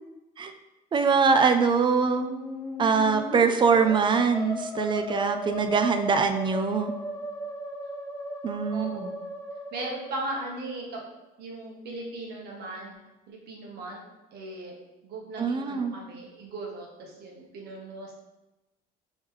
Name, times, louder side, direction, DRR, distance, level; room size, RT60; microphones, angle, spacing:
voice 1, 0.9-2.3 2.8-6.9 8.4-9.1 15.4-16.0, right 5 dB, 30° right, 7 dB, 0.4 m, -23 dB
Musical instrument, 2.1-10.8, equal, 15° left, 0.6 m, -36 dB
voice 2, 8.7-9.0 9.7-11.0 11.4-13.0 13.3-14.0 14.3-14.8 15.0-18.1, right 2 dB, 75° right, -1 dB, 1.1 m, -38 dB
3.5 x 3.1 x 3.1 m, 1.0 s
cardioid pair, 110°, 17 cm